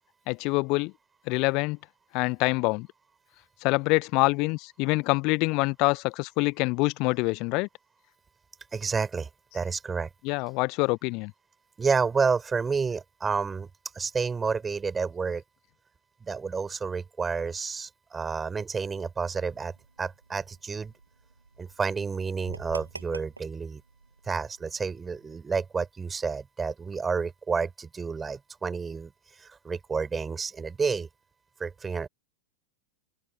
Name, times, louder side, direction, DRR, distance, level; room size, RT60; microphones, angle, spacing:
voice 1, 0.3-0.9 1.3-1.8 2.1-2.9 3.6-7.7 10.2-11.3, left 26 dB, 40° left, 0.8 m, -25 dB
voice 2, 8.7-10.1 11.8-13.7 13.9-15.4 16.2-20.9 21.6-23.8 24.2-29.1 29.4-31.1 31.6-32.1, right 5 dB, 15° right, 4.6 m, -30 dB
sound 1, 19.3-25.4, right 3 dB, 80° right, 5.9 m, -48 dB
open air
figure-of-eight pair, 90°, 0 cm